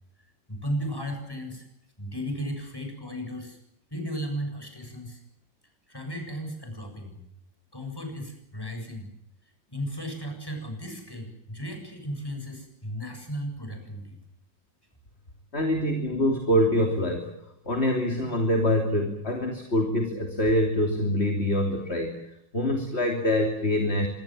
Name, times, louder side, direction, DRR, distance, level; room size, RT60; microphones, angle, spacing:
voice 1, 0.5-1.7 2.0-3.6 3.9-5.2 5.9-7.2 7.7-9.1 9.7-14.1, equal, 10° left, 4 dB, 7.6 m, -35 dB
voice 2, 15.5-24.1, left 1 dB, 35° left, 4 dB, 3.4 m, -25 dB
26.0 x 23.5 x 7.6 m, 0.77 s
omnidirectional pair, 1.9 m